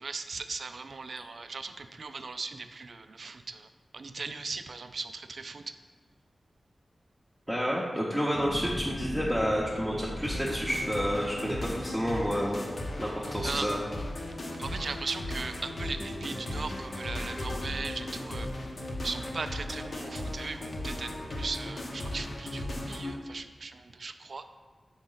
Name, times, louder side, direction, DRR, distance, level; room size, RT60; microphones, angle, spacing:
voice 1, 0.0-5.6 13.4-13.7 14.6-18.5 19.0-24.4, right 4 dB, 65° right, 9 dB, 0.3 m, -38 dB
voice 2, 7.5-12.6 13.0-13.8, equal, 5° right, -6 dB, 0.7 m, -29 dB
sound 1, 8.3-12.8 13.3-13.5, left 1 dB, 30° left, 0.4 m, -40 dB
sound 2, 10.2-23.2, left 1 dB, 55° left, 0.8 m, -36 dB
6.2 x 4.0 x 3.9 m, 1.4 s
wide cardioid pair, 100°, 0 cm